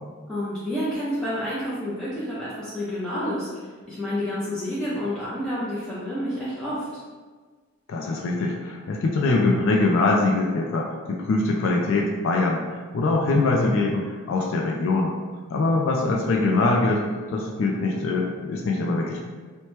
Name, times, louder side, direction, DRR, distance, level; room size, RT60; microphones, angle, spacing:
voice 1, 0.3-3.5 3.9-7.0, equal, 5° left, -11 dB, 0.5 m, -29 dB
voice 2, 7.9-12.6 12.9-15.1 15.5-19.3, left 3 dB, 60° left, 0 dB, 0.3 m, -23 dB
2.9 x 2.1 x 3.1 m, 1.4 s
head